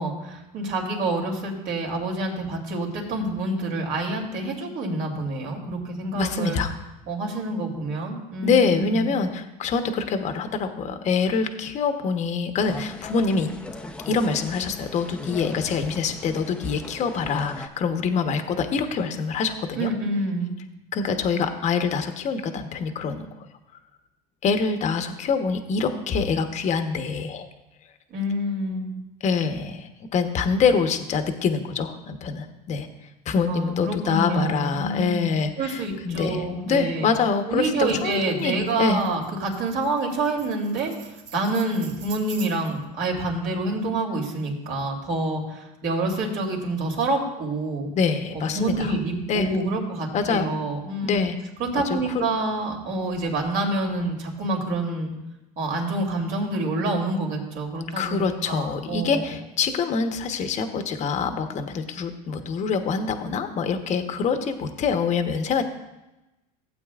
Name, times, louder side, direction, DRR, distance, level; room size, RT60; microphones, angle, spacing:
voice 1, 0.0-6.6 7.1-9.1 19.8-20.5 28.1-28.9 33.5-37.1 37.5-47.9 48.3-51.3 51.6-55.1 55.6-59.3, right 2 dB, 55° right, 0 dB, 2.9 m, -27 dB
voice 2, 6.1-6.7 8.4-13.5 14.1-19.9 20.9-23.5 24.4-27.5 29.2-32.9 33.3-39.0 47.9-48.9 49.3-49.5 50.1-50.5 51.0-51.3 51.7-52.2 58.0-65.6, left 5 dB, 35° left, 7 dB, 1.0 m, -25 dB
sound 1, 12.6-17.7, left 2 dB, 5° left, 0.7 m, -38 dB
Tambourine, 37.8-42.8, right 6 dB, 75° right, 2.3 m, -45 dB
16.0 x 8.5 x 2.4 m, 0.98 s
supercardioid pair, 115°, 20 cm